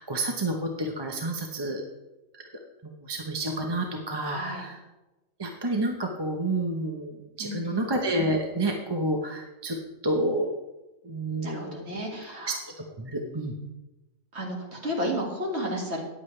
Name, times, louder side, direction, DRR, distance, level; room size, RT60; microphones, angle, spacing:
voice 1, 0.0-1.8 2.3-2.4 2.8-4.8 5.4-9.8 10.0-10.5 11.0-12.0 12.5-13.5, right 1 dB, 20° right, 2 dB, 0.8 m, -29 dB
voice 2, 4.2-4.7 7.4-7.9 11.4-12.6 14.3-16.0, equal, 50° right, -1 dB, 2.4 m, -32 dB
14.0 x 10.0 x 3.3 m, 1.0 s
omnidirectional pair, 1.4 m